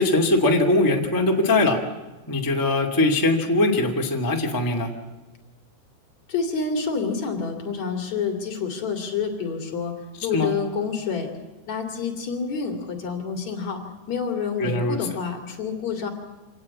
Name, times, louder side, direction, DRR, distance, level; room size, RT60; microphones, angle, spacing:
voice 1, 0.0-1.8 2.3-4.9 10.2-10.5 14.6-15.0, left 2 dB, 10° left, 1 dB, 1.0 m, -21 dB
voice 2, 6.3-9.9 10.2-11.3 11.7-13.8 14.1-16.1, left 5 dB, 45° left, 4 dB, 3.4 m, -28 dB
26.5 x 18.0 x 8.5 m, 1.2 s
omnidirectional pair, 5.0 m